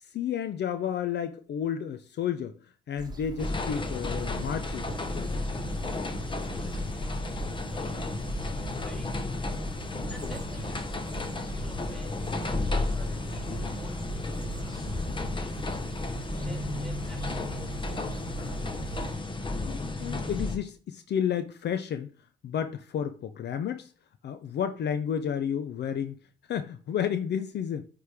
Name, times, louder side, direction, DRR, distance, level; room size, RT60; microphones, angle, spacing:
voice 1, 0.1-2.5 2.9-4.9 20.0-22.1 22.4-23.9 24.2-26.2 26.5-27.8, left 8 dB, 60° left, 0.5 m, -31 dB
sound 1, 3.0-19.1, right 2 dB, 20° right, 1.2 m, -40 dB
sound 2, 3.4-20.6, left 2 dB, 25° left, 0.8 m, -33 dB
voice 2, 6.4-7.2 7.7-8.3 8.7-9.4 10.1-11.0 11.4-16.0 16.3-18.0, equal, ahead, 2.1 m, -51 dB
8.7 x 3.4 x 3.5 m
cardioid pair, 90°, 20 cm